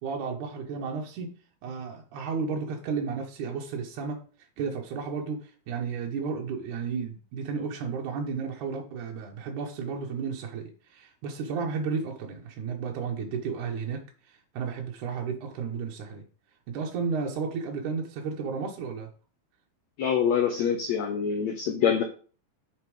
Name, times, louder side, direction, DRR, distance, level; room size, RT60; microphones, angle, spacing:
voice 1, 0.0-1.3 1.6-4.2 4.6-14.0 14.3-16.2 16.7-19.1, right 5 dB, 65° right, 0 dB, 2.2 m, -33 dB
voice 2, 20.0-22.0, left 7 dB, 80° left, 5 dB, 1.6 m, -25 dB
8.1 x 6.2 x 5.0 m, 0.40 s
omnidirectional pair, 4.5 m